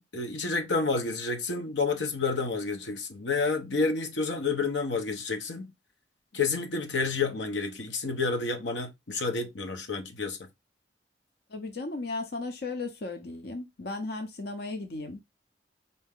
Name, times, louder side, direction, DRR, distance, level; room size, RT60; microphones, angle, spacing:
voice 1, 0.0-5.7 6.3-10.5, left 4 dB, 90° left, 0.9 m, -29 dB
voice 2, 11.5-15.2, left 3 dB, 60° left, 0.7 m, -35 dB
4.4 x 2.8 x 3.6 m
head